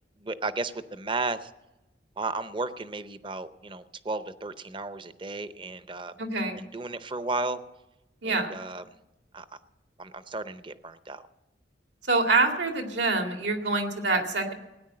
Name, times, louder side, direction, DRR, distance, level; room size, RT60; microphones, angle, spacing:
voice 1, 0.2-1.5 2.2-6.1 6.5-7.6 8.2-8.8 9.3-9.4 10.0-11.3, right 3 dB, 25° right, 12 dB, 0.6 m, -34 dB
voice 2, 6.2-6.6 8.2-8.6 12.1-14.5, right 3 dB, 80° right, 4 dB, 2.2 m, -26 dB
17.0 x 9.7 x 7.6 m, 1.0 s
head